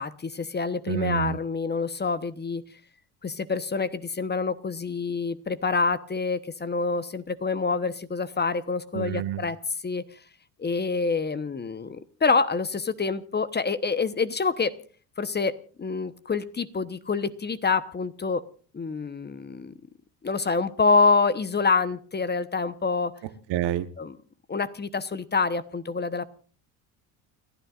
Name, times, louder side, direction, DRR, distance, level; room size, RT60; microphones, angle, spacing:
voice 1, 0.0-2.6 3.2-9.6 9.8-10.0 10.6-14.7 15.2-18.4 18.7-19.7 20.2-23.1 24.0-24.2 24.5-26.2, left 4 dB, 20° left, 13 dB, 1.0 m, -26 dB
voice 2, 0.9-1.4 8.9-9.4 23.5-23.9, right 12 dB, 65° right, 11 dB, 1.3 m, -28 dB
29.5 x 12.5 x 2.5 m, 0.41 s
supercardioid pair, 80°, 45 cm